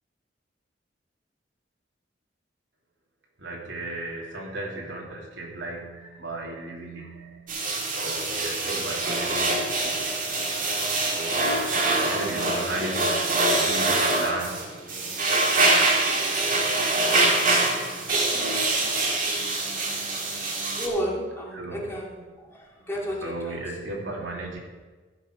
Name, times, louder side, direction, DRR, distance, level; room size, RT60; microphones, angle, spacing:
voice 1, 3.4-7.4 7.9-10.1 11.1-11.3 11.9-14.6 21.5-21.8 23.2-24.6, right 2 dB, 90° right, -2 dB, 2.8 m, -35 dB
sound 1, 7.5-20.9, right 2 dB, 50° right, 1.9 m, -24 dB
voice 2, 20.8-22.2 22.9-23.6, equal, 15° left, -4 dB, 2.4 m, -31 dB
14.0 x 5.9 x 6.3 m, 1.4 s
head